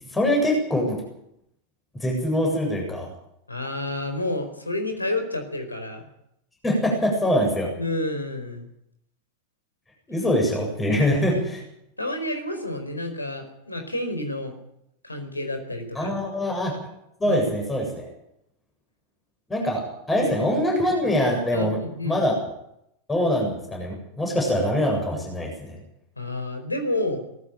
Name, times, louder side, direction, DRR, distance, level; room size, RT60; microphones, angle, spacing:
voice 1, 0.1-1.0 2.0-3.1 6.6-7.7 10.1-11.6 15.9-16.7 17.2-18.1 19.5-22.3 23.1-25.8, equal, 10° left, 0 dB, 7.8 m, -23 dB
voice 2, 3.5-6.0 7.8-8.7 11.3-11.4 12.0-14.5 15.0-16.1 17.2-17.4 20.2-20.3 21.5-22.2 26.2-27.2, left 1 dB, 80° left, 6 dB, 4.6 m, -30 dB
19.0 x 14.5 x 9.2 m, 0.77 s
figure-of-eight pair, 90°, 0 cm